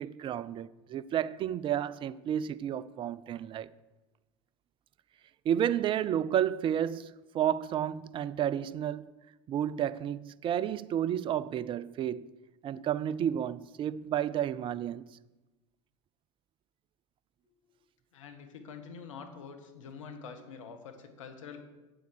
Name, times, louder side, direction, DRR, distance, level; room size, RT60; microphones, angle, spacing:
voice 1, 0.0-3.7 5.4-9.1 9.5-12.3 12.6-15.1, right 10 dB, 30° right, 0.4 m, -31 dB
voice 2, 18.1-21.6, left 6 dB, 75° left, 1.5 m, -46 dB
8.3 x 8.0 x 6.5 m
hypercardioid pair, 80°, 16 cm